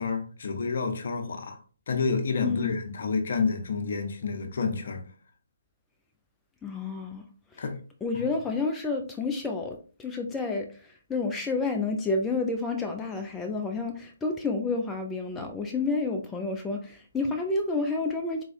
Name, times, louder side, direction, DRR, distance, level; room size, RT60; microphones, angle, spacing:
voice 1, 0.0-1.6 1.9-5.0 7.6-7.8 8.1-8.2, left 4 dB, 55° left, 5 dB, 0.7 m, -29 dB
voice 2, 2.4-2.7 6.6-7.2 7.5-7.6 8.0-18.4, left 3 dB, 10° left, 3 dB, 0.3 m, -30 dB
4.2 x 2.3 x 2.6 m, 0.40 s
figure-of-eight pair, 140°, 0 cm